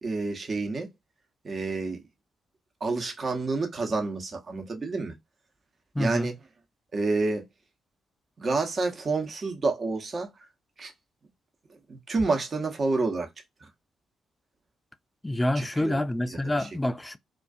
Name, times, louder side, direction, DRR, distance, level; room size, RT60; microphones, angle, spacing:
voice 1, 0.0-0.9 1.4-2.0 2.8-5.1 6.0-6.4 6.9-7.4 8.4-10.3 10.8-10.9 11.9-13.3 13.6-13.7 15.5-16.0 16.3-16.7, right 3 dB, 45° right, 0.8 m, -29 dB
voice 2, 6.0-6.3 15.2-17.2, left 1 dB, 15° left, 0.3 m, -27 dB
2.4 x 2.3 x 2.3 m
figure-of-eight pair, 40°, 0 cm